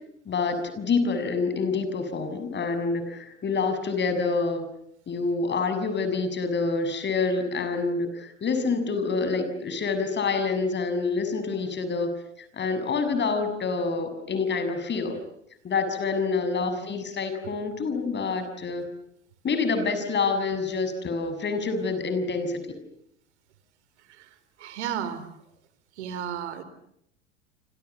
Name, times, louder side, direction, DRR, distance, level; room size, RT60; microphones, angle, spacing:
voice 1, 0.2-4.7 5.1-12.1 12.5-15.2 15.6-18.8 19.4-22.6, left 4 dB, 30° left, 10 dB, 6.7 m, -27 dB
voice 2, 24.6-25.3 26.0-26.6, right 9 dB, 75° right, 12 dB, 3.7 m, -33 dB
29.5 x 26.5 x 7.1 m, 0.72 s
hypercardioid pair, 85°, 35 cm